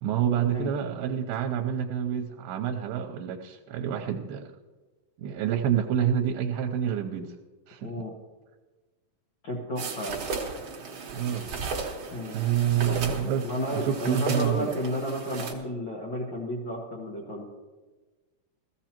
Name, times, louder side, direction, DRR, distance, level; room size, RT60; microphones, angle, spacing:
voice 1, 0.0-4.5 5.2-7.4 7.7-7.9 11.1-11.5 12.3-14.7, right 9 dB, 80° right, 2 dB, 2.5 m, -28 dB
voice 2, 7.8-8.1 9.4-10.2 12.1-12.3 12.9-13.0 13.4-17.5, equal, 75° left, -3 dB, 1.0 m, -32 dB
sound 1, 9.8-15.5, right 4 dB, 60° right, 1.4 m, -35 dB
17.0 x 14.5 x 2.9 m, 1.2 s
omnidirectional pair, 4.4 m